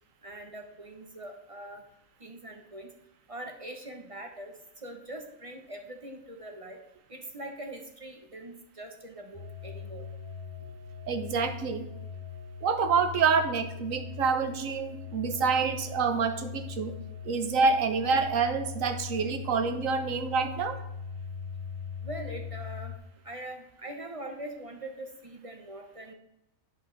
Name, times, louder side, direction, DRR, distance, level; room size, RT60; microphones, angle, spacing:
voice 1, 0.2-1.8 2.2-2.9 3.3-6.8 7.1-10.1 15.1-15.2 22.0-22.9 23.2-26.1, right 1 dB, 30° right, 3 dB, 0.9 m, -42 dB
sound 1, 9.3-23.0, left 7 dB, 25° left, 0.9 m, -40 dB
voice 2, 11.1-11.9 12.6-16.9 17.2-20.8, right 5 dB, 75° right, 8 dB, 1.2 m, -27 dB
10.5 x 5.4 x 3.9 m, 0.86 s
omnidirectional pair, 1.4 m